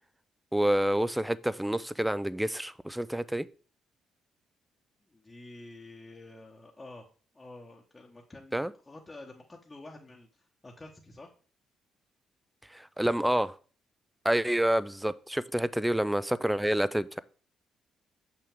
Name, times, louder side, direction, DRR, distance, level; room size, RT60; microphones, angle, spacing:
voice 1, 0.5-3.5 8.5-8.7 12.7-13.5 14.2-17.2, right 1 dB, 5° right, 0.3 m, -28 dB
voice 2, 5.0-7.1 7.3-11.3 13.0-13.4, left 2 dB, 20° left, 1.0 m, -49 dB
6.2 x 5.8 x 3.5 m
cardioid pair, 90°, 0 cm